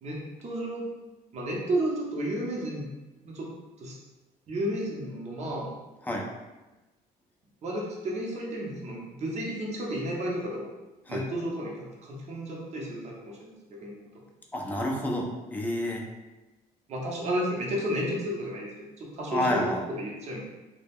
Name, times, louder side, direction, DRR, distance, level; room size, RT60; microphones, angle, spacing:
voice 1, 0.0-0.9 1.3-2.9 3.2-3.5 3.8-3.9 4.5-5.7 7.6-10.7 11.1-14.0 16.9-19.6 20.0-20.4, right 1 dB, 40° right, -3 dB, 0.7 m, -32 dB
voice 2, 14.5-16.0 19.3-19.8, left 1 dB, 10° left, 0 dB, 0.4 m, -29 dB
2.3 x 2.1 x 3.4 m, 1.1 s
cardioid pair, 110°, 17 cm